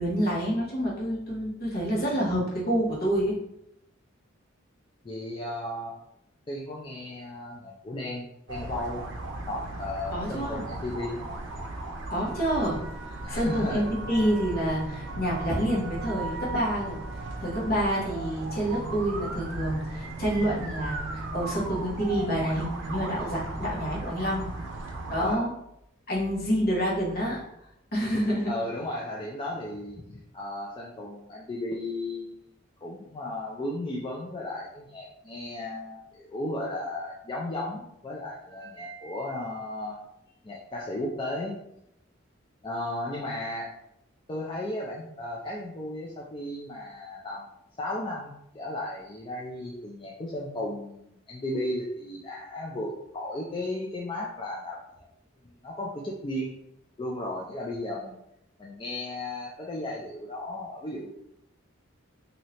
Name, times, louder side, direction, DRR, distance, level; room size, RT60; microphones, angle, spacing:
voice 1, 0.0-3.4 10.1-10.7 12.1-12.8 13.1-17.0 17.4-24.5 25.1-25.5 26.1-27.4 27.9-28.5, equal, 50° left, -5 dB, 1.2 m, -28 dB
voice 2, 5.0-5.9 6.5-9.1 9.5-11.3 13.2-13.9 25.2-25.4 28.5-32.4 32.8-40.0 40.4-41.6 42.6-43.7 44.3-47.5 47.8-55.1 55.6-56.6 57.0-58.2 58.6-61.1, left 1 dB, 25° left, -3 dB, 0.4 m, -35 dB
sound 1, 8.5-25.4, right 2 dB, 65° right, 0.5 m, -36 dB
3.1 x 2.7 x 2.8 m, 0.80 s
head